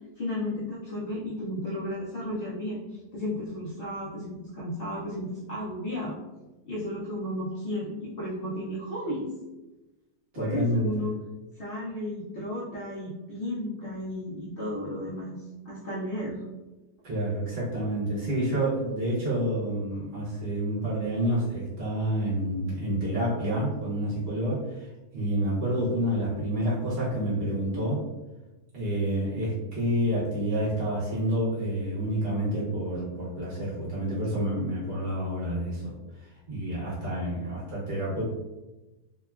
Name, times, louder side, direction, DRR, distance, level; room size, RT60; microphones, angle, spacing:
voice 1, 0.2-6.2 6.7-9.3 10.4-11.1 11.6-16.4, left 1 dB, 85° left, -6 dB, 0.5 m, -33 dB
voice 2, 10.3-10.9 17.0-24.9 25.1-28.0 28.7-35.9 36.5-38.2, right 1 dB, 55° right, -7 dB, 0.9 m, -28 dB
2.9 x 2.2 x 2.2 m, 1.1 s
omnidirectional pair, 1.6 m